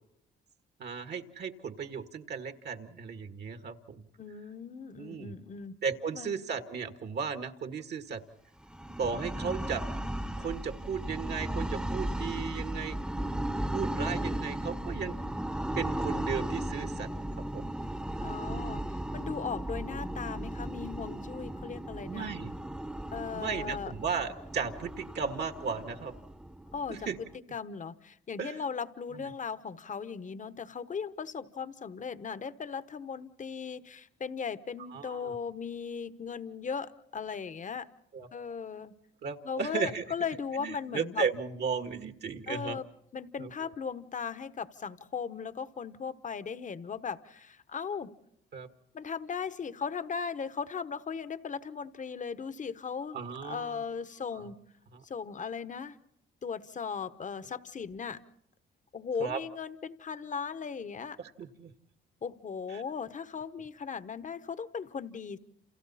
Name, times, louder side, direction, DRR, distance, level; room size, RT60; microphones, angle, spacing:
voice 1, 0.8-4.0 5.0-5.3 5.8-8.2 9.0-9.8 10.4-13.0 13.7-15.2 15.8-17.1 17.5-17.7 18.5-18.8 22.0-22.5 23.3-26.1 26.9-27.2 28.4-28.6 29.1-29.2 34.9-35.4 38.1-38.3 39.2-40.0 40.6-42.8 43.4-43.5 48.5-48.7 53.1-53.8 54.3-54.5 54.9-55.0 59.2-59.4 61.2-61.7 62.7-62.8, right 6 dB, 60° right, 7 dB, 1.7 m, -35 dB
voice 2, 4.2-5.8 6.1-6.3 18.2-22.3 23.1-23.9 26.7-37.9 38.3-38.9 39.4-41.2 42.5-42.9 43.1-48.1 48.9-53.2 53.4-54.6 55.0-56.0 56.4-58.2 58.9-61.2 62.2-65.4, left 6 dB, 40° left, 13 dB, 1.1 m, -37 dB
sound 1, 8.6-27.3, right 1 dB, 5° right, 1.0 m, -36 dB
29.5 x 28.0 x 4.2 m, 0.73 s
cardioid pair, 90°, 20 cm